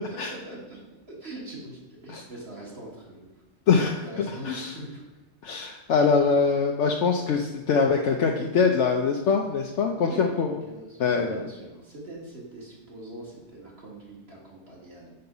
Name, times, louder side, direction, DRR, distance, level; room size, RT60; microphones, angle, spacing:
voice 1, 0.1-0.8 1.2-3.3 4.0-5.0 10.0-15.1, right 1 dB, 60° right, -4 dB, 2.4 m, -42 dB
voice 2, 3.7-4.0 4.4-4.7 5.4-10.5 11.0-11.4, left 5 dB, 75° left, 1 dB, 1.0 m, -23 dB
6.6 x 5.8 x 5.4 m, 1.1 s
omnidirectional pair, 1.2 m